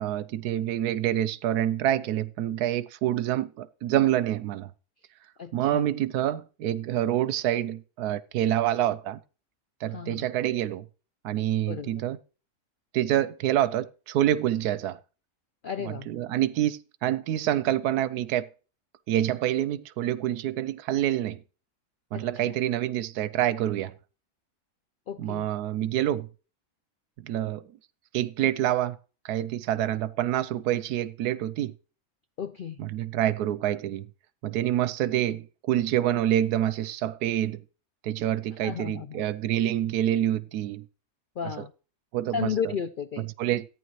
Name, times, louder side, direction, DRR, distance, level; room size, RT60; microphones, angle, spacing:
voice 1, 0.0-4.7 5.5-9.2 9.8-10.8 11.2-12.2 12.9-15.0 15.8-18.5 19.1-21.4 22.1-23.9 25.2-26.3 27.2-27.6 28.1-29.0 29.2-31.7 32.8-34.1 34.4-37.6 38.0-40.9 41.6-41.7 42.1-42.5 43.4-43.7, right 12 dB, 85° right, 1.2 m, -27 dB
voice 2, 5.4-5.9 9.9-10.3 11.7-11.9 15.6-16.1 22.1-22.6 25.1-25.5 32.4-32.8 38.6-39.2 41.4-41.7 42.3-43.3, left 7 dB, 80° left, 0.4 m, -33 dB
14.0 x 9.7 x 3.1 m
omnidirectional pair, 1.6 m